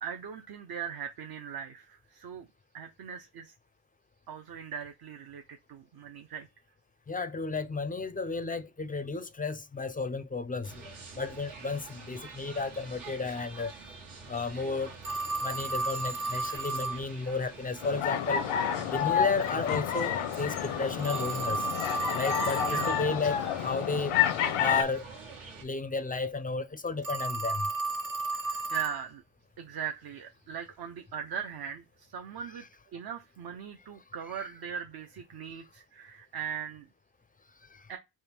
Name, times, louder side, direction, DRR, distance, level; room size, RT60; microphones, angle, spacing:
voice 1, 0.0-2.5 2.7-3.5 4.3-6.5 16.5-16.6 17.2-17.4 22.7-23.0 28.2-29.2 29.6-32.6 32.9-36.9 37.9-38.0, right 8 dB, 50° right, 0.6 m, -40 dB
voice 2, 7.1-10.9 11.2-13.7 14.3-15.0 15.4-18.4 18.8-21.7 22.1-24.1 24.6-25.1 25.6-27.7 37.7-37.9, left 4 dB, 20° left, 0.4 m, -33 dB
sound 1, 10.6-25.6, right 4 dB, 75° right, 1.4 m, -47 dB
Telephone, 15.0-17.0 21.0-23.0 27.0-29.0, right 3 dB, 30° right, 0.9 m, -33 dB
sound 2, 17.8-24.8, left 9 dB, 85° left, 0.6 m, -30 dB
3.6 x 2.1 x 4.3 m
cardioid pair, 70°, 49 cm